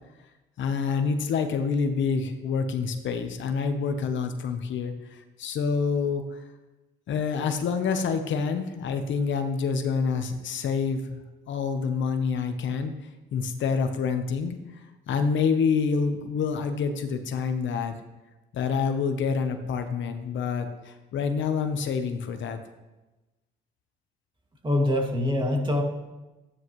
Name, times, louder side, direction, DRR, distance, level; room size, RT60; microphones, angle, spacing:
voice 1, 0.6-6.4 7.1-12.9 13.3-14.8 15.1-18.0 18.5-22.6, left 5 dB, 70° left, 7 dB, 1.0 m, -27 dB
voice 2, 24.6-25.8, left 1 dB, 25° right, 1 dB, 2.3 m, -24 dB
13.5 x 9.3 x 3.2 m, 1.1 s
cardioid pair, 90°, 20 cm